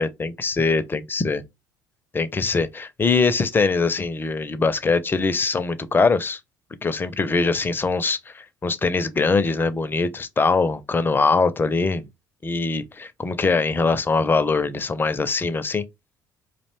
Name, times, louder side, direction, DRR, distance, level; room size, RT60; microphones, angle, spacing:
voice 1, 0.0-1.4 2.1-6.4 6.8-12.0 12.4-15.8, left 4 dB, 20° left, 0.4 m, -22 dB
2.5 x 2.1 x 3.1 m
figure-of-eight pair, 55°, 11 cm